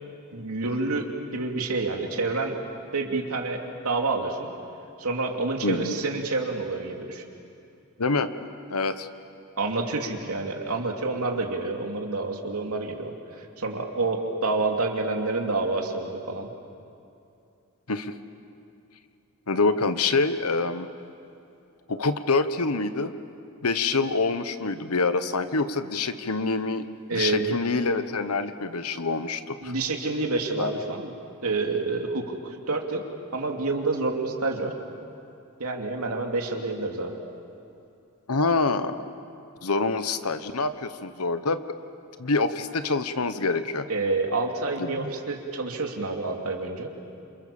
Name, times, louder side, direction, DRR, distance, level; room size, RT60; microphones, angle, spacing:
voice 1, 0.3-2.6 2.9-4.5 5.0-7.2 9.6-16.5 27.1-27.6 29.6-31.1 31.4-33.0 33.3-34.7 35.6-37.2 43.9-46.9, right 3 dB, 80° right, 2 dB, 2.9 m, -28 dB
voice 2, 5.6-5.9 8.0-8.3 8.7-9.1 17.9-18.1 19.5-20.9 21.9-23.1 23.6-26.8 27.1-29.7 30.6-30.7 38.3-39.1 39.6-41.6 42.2-43.9 44.8-45.1, left 3 dB, 85° left, 11 dB, 1.2 m, -26 dB
28.0 x 28.0 x 7.2 m, 2.6 s
head